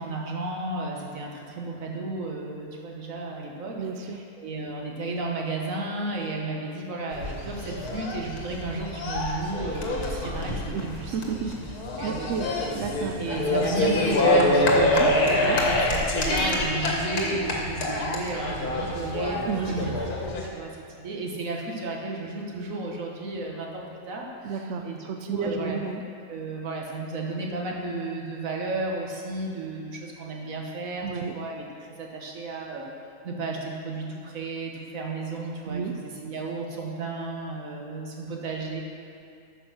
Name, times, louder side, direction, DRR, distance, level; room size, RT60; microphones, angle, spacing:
voice 1, 0.0-11.2 11.6-11.7 12.0-12.5 13.2-15.4 15.7-19.9 20.2-25.8 26.3-32.9 33.2-38.8, right 2 dB, 55° right, -1 dB, 1.6 m, -33 dB
voice 2, 3.8-4.2 10.7-10.9 11.1-11.5 12.0-12.5 12.8-13.2 14.8-15.1 15.4-15.6 19.4-20.1 24.4-24.8 25.1-26.0 31.0-31.4 35.7-35.9, right 6 dB, 70° right, 4 dB, 0.7 m, -31 dB
sound 1, 7.1-20.5, left 1 dB, 60° left, 1.7 m, -26 dB
8.9 x 6.1 x 6.2 m, 2.6 s
omnidirectional pair, 1.8 m